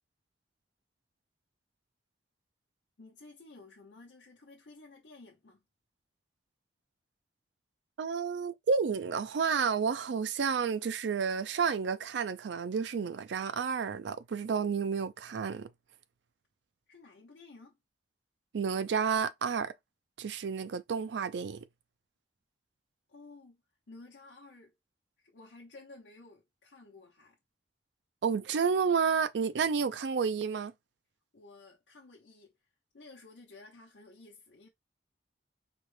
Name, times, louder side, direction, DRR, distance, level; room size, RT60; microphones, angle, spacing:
voice 1, 3.0-5.6 16.9-17.8 23.1-23.6 23.9-24.8 25.2-27.4 31.3-32.5 32.9-34.7, left 3 dB, 85° left, 0.8 m, -54 dB
voice 2, 8.0-15.7 18.5-19.7 20.2-21.6 28.2-30.7, right 6 dB, 75° right, 0.4 m, -30 dB
4.3 x 2.1 x 3.1 m
head